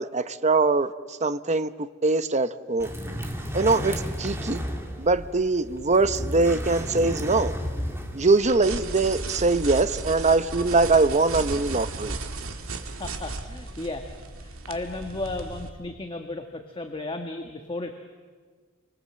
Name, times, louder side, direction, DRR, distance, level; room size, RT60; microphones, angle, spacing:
voice 1, 0.0-2.9 3.5-4.6 5.0-7.5 8.1-12.2, right 3 dB, 35° right, 0.9 m, -22 dB
sound 1, 2.8-8.5, equal, 10° right, 2.7 m, -33 dB
sound 2, 8.4-15.7, right 3 dB, 80° right, 2.0 m, -35 dB
voice 2, 13.0-14.0 14.4-17.9, left 2 dB, 25° left, 1.5 m, -34 dB
29.0 x 25.0 x 7.7 m
head